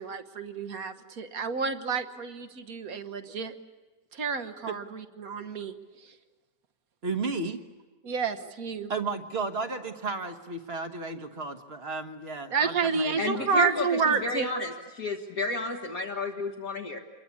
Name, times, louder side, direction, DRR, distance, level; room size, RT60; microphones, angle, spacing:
voice 1, 0.0-3.5 4.1-5.7 6.0-6.1 8.0-8.9 12.5-14.5, right 5 dB, 60° right, 10 dB, 1.6 m, -29 dB
voice 2, 7.0-7.6 8.9-13.5, right 4 dB, 40° right, 8 dB, 1.4 m, -33 dB
voice 3, 13.2-17.0, left 2 dB, 55° left, 0 dB, 2.0 m, -31 dB
27.5 x 22.0 x 8.5 m, 1.3 s
omnidirectional pair, 1.8 m